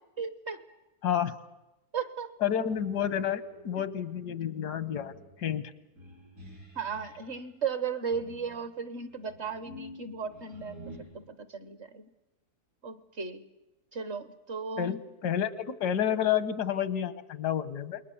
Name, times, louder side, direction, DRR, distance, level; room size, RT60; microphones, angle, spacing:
voice 1, 0.2-0.6 1.9-2.3 6.7-12.1 12.8-13.4 13.9-15.0, right 6 dB, 45° right, 12 dB, 1.3 m, -36 dB
voice 2, 1.0-1.4 2.4-5.7 14.8-18.0, left 9 dB, 85° left, 14 dB, 1.6 m, -30 dB
kittens from hell, 2.7-7.4 8.1-11.0, left 1 dB, 70° right, 7.0 m, -50 dB
28.5 x 21.0 x 7.1 m, 0.93 s
omnidirectional pair, 1.7 m